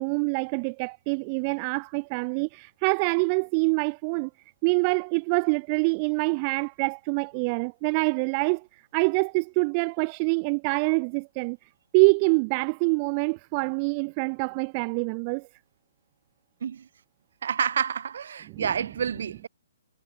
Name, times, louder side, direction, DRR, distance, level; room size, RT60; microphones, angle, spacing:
voice 1, 0.0-4.3 4.6-15.5 18.5-18.7, right 35 dB, 30° right, 0.9 m, -25 dB
voice 2, 17.4-19.5, right 7 dB, 55° right, 4.8 m, -29 dB
figure-of-eight pair, 125°, 0 cm